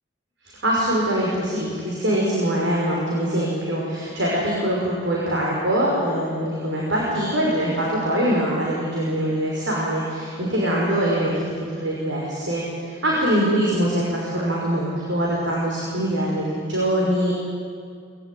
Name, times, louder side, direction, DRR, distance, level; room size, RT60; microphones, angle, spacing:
voice 1, 0.6-11.3 11.6-12.6 13.0-17.3, right 1 dB, 80° right, -4 dB, 5.8 m, -23 dB
25.0 x 21.5 x 9.4 m, 2.2 s
head